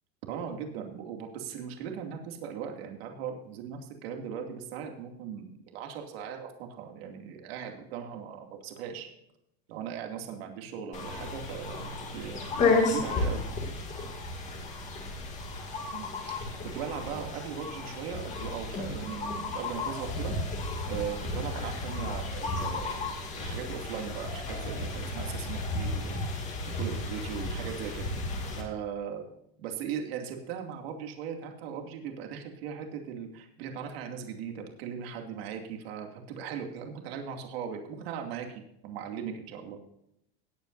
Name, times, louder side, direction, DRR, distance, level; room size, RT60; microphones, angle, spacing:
voice 1, 0.3-9.1 9.7-13.4 15.9-20.3 20.9-26.2 26.8-28.1 28.5-29.3 29.6-39.8, right 7 dB, 70° right, 3 dB, 2.5 m, -39 dB
Birds with Stream, 10.9-28.6, left 3 dB, 25° left, 2.4 m, -33 dB
18.5 x 9.0 x 2.7 m, 0.76 s
supercardioid pair, 175°, 32 cm